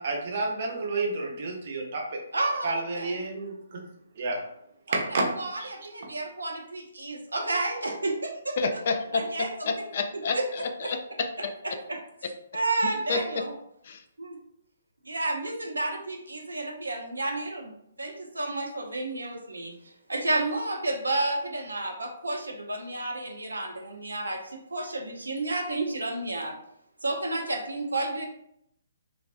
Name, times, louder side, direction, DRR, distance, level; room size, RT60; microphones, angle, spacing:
voice 1, 0.0-2.2 2.6-3.5 4.2-4.4 4.9-5.3 5.6-5.7, right 3 dB, 55° right, 0 dB, 0.7 m, -30 dB
voice 2, 2.3-3.2 4.9-8.6 9.1-9.5 10.3-10.4 10.8-10.9 11.6-12.0 12.5-13.5 14.2-14.4 15.0-17.7 18.0-26.5 27.0-28.2, right 2 dB, 90° right, 2 dB, 0.6 m, -31 dB
voice 3, 8.6-11.5 13.1-13.4 13.8-14.0, left 4 dB, 50° left, 6 dB, 0.4 m, -30 dB
3.3 x 2.1 x 2.5 m, 0.75 s
hypercardioid pair, 140°, 0 cm